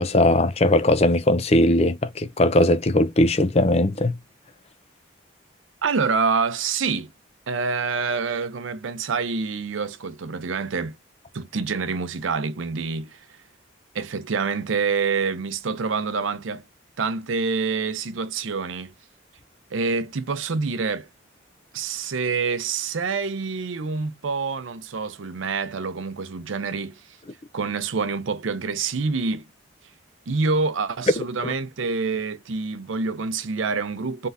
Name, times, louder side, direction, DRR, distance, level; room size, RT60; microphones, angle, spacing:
voice 1, 0.0-4.1 31.4-31.5, left 1 dB, 30° left, 0.6 m, -19 dB
voice 2, 5.8-7.1 7.5-11.0 11.3-13.2 13.9-16.6 17.0-18.9 19.7-21.1 21.7-26.9 27.5-29.4 30.3-34.3, right 4 dB, 85° right, 0.6 m, -26 dB
4.0 x 3.7 x 2.6 m
head